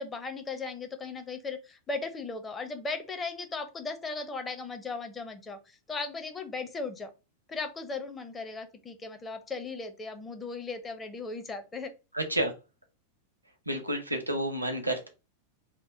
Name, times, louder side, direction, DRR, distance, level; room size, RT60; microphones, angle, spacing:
voice 1, 0.0-7.1 7.5-11.9, left 4 dB, 15° left, 7 dB, 0.5 m, -37 dB
voice 2, 12.1-12.5 13.7-15.1, right 1 dB, 85° right, 5 dB, 0.7 m, -30 dB
2.9 x 2.1 x 4.1 m, 0.29 s
figure-of-eight pair, 90°, 0 cm